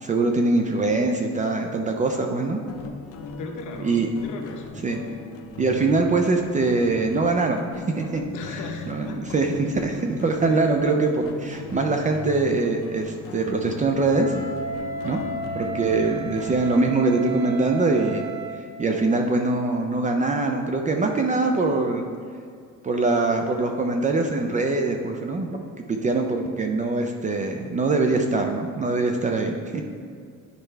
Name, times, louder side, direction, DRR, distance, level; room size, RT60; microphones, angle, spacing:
voice 1, 0.0-2.6 3.8-4.1 4.8-5.0 5.6-8.2 8.9-14.3 15.0-15.2 15.5-18.3 18.8-22.0 22.8-29.8, right 3 dB, 25° right, 3 dB, 0.3 m, -23 dB
sound 1, 2.7-16.8, left 4 dB, 45° left, 0.6 m, -39 dB
voice 2, 3.4-4.6 8.3-9.2 10.5-10.9 16.0-16.3, left 4 dB, 65° left, 3 dB, 1.0 m, -37 dB
Wind instrument woodwind instrument, 14.1-18.7, right 3 dB, 50° right, 1.6 m, -34 dB
10.5 x 4.4 x 3.3 m, 2.2 s
cardioid pair, 165°, 33 cm